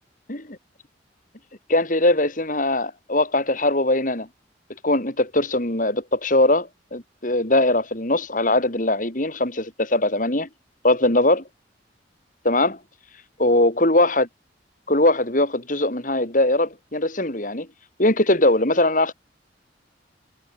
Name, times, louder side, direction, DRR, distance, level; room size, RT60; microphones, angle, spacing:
voice 1, 1.7-4.3 4.8-10.5 10.8-11.4 12.4-12.8 13.4-14.3 14.9-17.7 18.0-19.1, left 2 dB, 45° left, 3.8 m, -21 dB
head